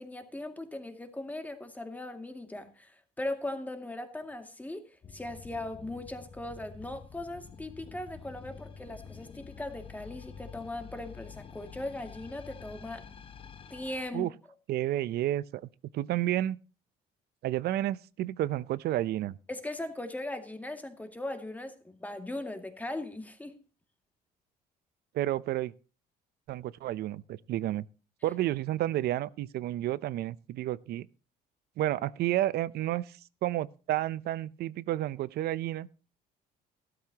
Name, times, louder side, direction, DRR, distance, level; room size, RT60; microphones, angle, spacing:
voice 1, 0.0-13.1 13.7-14.3 19.5-23.5, left 1 dB, 10° left, 2.3 m, -39 dB
sound 1, 5.0-14.1, left 6 dB, 30° left, 1.0 m, -48 dB
voice 2, 14.7-16.6 17.4-19.4 25.1-25.7 26.5-27.8 28.2-31.1 31.8-35.9, right 14 dB, 70° right, 0.7 m, -31 dB
15.5 x 13.0 x 2.9 m
cardioid pair, 110°, 17 cm